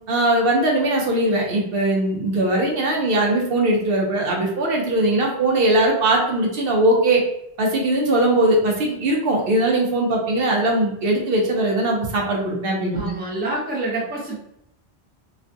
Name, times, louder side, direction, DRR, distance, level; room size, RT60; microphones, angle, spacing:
voice 1, 0.1-7.2 7.6-13.0, right 1 dB, 65° right, 0 dB, 0.7 m, -20 dB
voice 2, 12.9-14.5, right 2 dB, 10° right, -4 dB, 0.5 m, -27 dB
2.4 x 2.2 x 2.5 m, 0.77 s
omnidirectional pair, 1.1 m